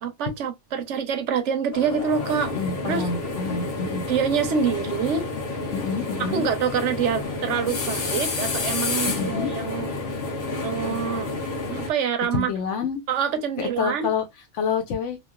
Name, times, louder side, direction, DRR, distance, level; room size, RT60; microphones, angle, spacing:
voice 1, 0.0-2.6 2.8-3.1 4.1-5.3 6.2-9.9 10.6-11.3 11.7-12.5 13.1-14.1, right 7 dB, 80° right, 1.0 m, -26 dB
sound 1, 1.7-11.9, left 3 dB, 55° left, 1.0 m, -29 dB
voice 2, 2.5-4.1 5.7-6.5 9.1-9.5 12.3-13.0 13.6-14.2 14.5-15.2, left 6 dB, 85° left, 1.1 m, -27 dB
3.1 x 2.4 x 2.2 m
omnidirectional pair, 1.2 m